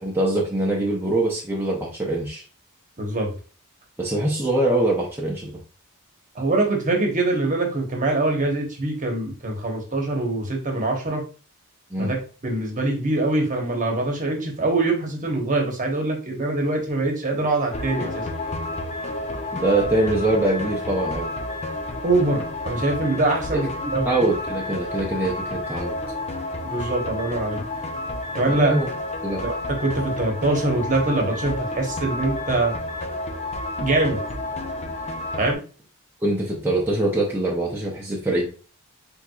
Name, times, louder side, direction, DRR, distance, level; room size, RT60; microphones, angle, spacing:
voice 1, 0.0-2.4 4.0-5.5 11.9-12.1 19.5-21.3 23.5-26.0 28.5-28.9 29.2-29.4 36.2-38.5, right 1 dB, 10° right, -4 dB, 0.7 m, -23 dB
voice 2, 3.0-3.3 6.3-11.2 12.0-12.2 12.4-18.2 22.0-24.1 26.6-27.6 28.3-28.7 29.4-32.7 33.8-34.2 35.4-35.6, right 2 dB, 35° right, 1 dB, 1.1 m, -23 dB
sound 1, 17.7-35.5, left 1 dB, 30° left, 0.5 m, -30 dB
4.5 x 3.5 x 2.3 m, 0.37 s
head